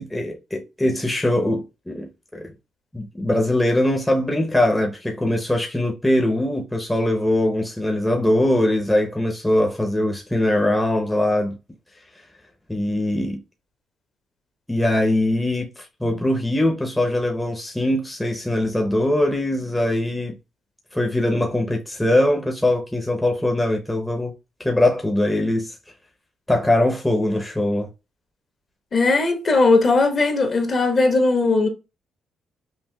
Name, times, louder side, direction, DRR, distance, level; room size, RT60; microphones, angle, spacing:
voice 1, 0.0-2.5 2.9-11.6 12.7-13.4 14.7-15.7 16.0-20.4 20.9-24.3 24.6-25.7 26.5-27.9, left 1 dB, 10° left, 0.7 m, -21 dB
voice 2, 28.9-31.7, left 3 dB, 45° left, 1.0 m, -18 dB
5.6 x 2.4 x 2.2 m
cardioid pair, 90°, 0 cm